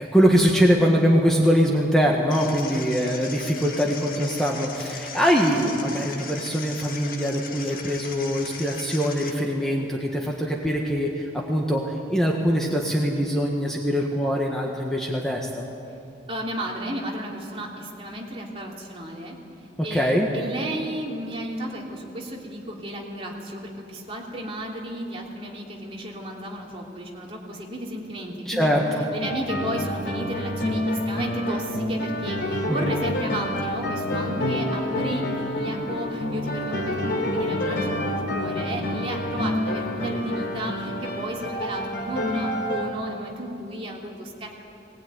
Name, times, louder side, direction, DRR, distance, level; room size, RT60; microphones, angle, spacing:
voice 1, 0.0-11.8 12.1-15.6 19.9-20.3 28.4-29.0 32.7-32.9, equal, 5° left, -1 dB, 1.6 m, -23 dB
sound 1, 2.3-9.3, left 5 dB, 50° left, 1.9 m, -38 dB
voice 2, 16.3-19.3 19.8-28.7 29.1-44.6, equal, 30° right, -2 dB, 3.2 m, -33 dB
sound 2, 29.2-42.9, left 1 dB, 75° left, 3.4 m, -28 dB
20.0 x 19.5 x 9.5 m, 2.7 s
head